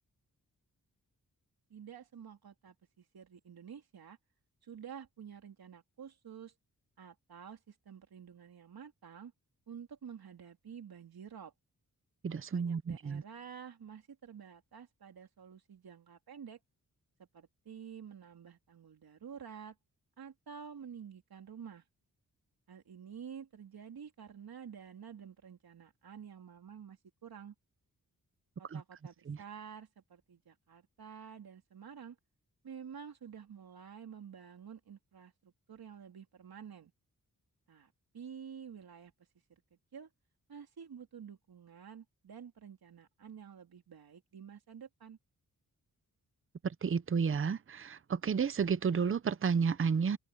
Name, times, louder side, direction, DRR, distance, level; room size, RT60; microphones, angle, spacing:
voice 1, 1.7-4.2 4.6-6.5 7.0-9.3 9.7-11.5 12.5-16.6 17.3-19.8 20.2-21.8 22.7-27.5 28.6-32.2 32.6-36.9 37.7-39.1 39.7-40.1 40.5-45.2, right 7 dB, 85° right, 3.4 m, -50 dB
voice 2, 12.2-13.2 28.7-28.8 29.3-29.4 46.6-50.2, right 6 dB, 35° right, 0.6 m, -31 dB
open air
wide cardioid pair, 155°, 36 cm